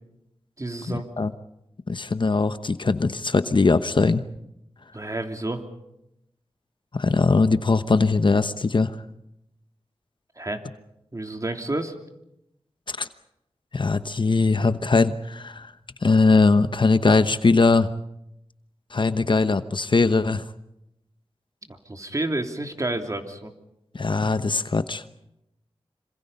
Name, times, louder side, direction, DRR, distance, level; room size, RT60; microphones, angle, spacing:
voice 1, 0.6-1.1 4.9-5.7 10.4-10.6 11.1-11.9 21.7-23.5, right 2 dB, 30° right, 4 dB, 2.9 m, -30 dB
voice 2, 1.9-4.2 6.9-8.9 12.9-13.1 13.7-15.7 16.0-17.9 18.9-20.4 23.9-25.0, left 3 dB, 50° left, 11 dB, 1.0 m, -20 dB
26.5 x 26.0 x 5.5 m, 0.84 s
wide cardioid pair, 60°, 10 cm